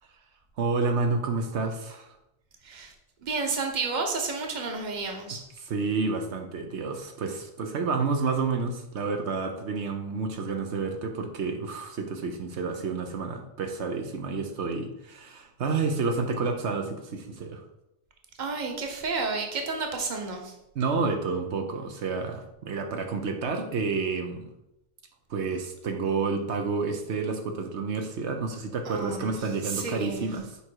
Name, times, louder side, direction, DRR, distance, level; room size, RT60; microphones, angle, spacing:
voice 1, 0.6-2.1 5.6-17.6 20.7-24.4 25.3-30.6, right 4 dB, 80° right, 4 dB, 1.1 m, -29 dB
voice 2, 3.2-5.4 18.4-20.5 28.8-29.3 29.6-30.2, right 4 dB, 45° right, 3 dB, 1.1 m, -31 dB
6.9 x 4.9 x 4.6 m, 0.85 s
omnidirectional pair, 1.1 m